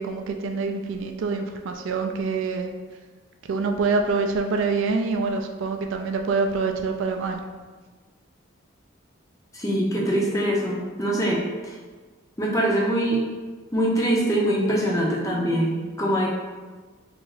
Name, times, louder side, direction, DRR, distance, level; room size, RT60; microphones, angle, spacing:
voice 1, 0.0-2.7 3.5-7.4, right 4 dB, 65° right, 4 dB, 0.3 m, -25 dB
voice 2, 9.5-11.7 12.4-13.2 13.7-16.3, right 1 dB, 15° left, -3 dB, 0.5 m, -23 dB
2.8 x 2.5 x 4.0 m, 1.4 s
head